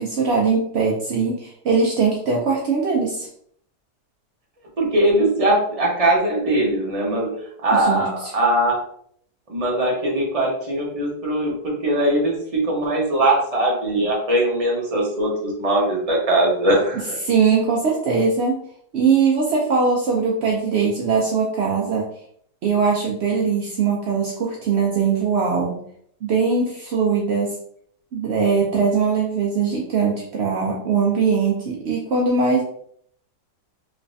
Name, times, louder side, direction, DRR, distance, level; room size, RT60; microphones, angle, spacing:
voice 1, 0.0-3.3 7.7-8.3 17.2-18.6 18.9-22.0 22.6-25.8 26.2-27.5 28.1-32.6, right 5 dB, 70° right, -2 dB, 0.6 m, -21 dB
voice 2, 4.8-7.3 7.6-8.8 9.5-17.2, right 1 dB, 30° right, -3 dB, 0.8 m, -20 dB
3.2 x 3.1 x 2.6 m, 0.66 s
omnidirectional pair, 1.8 m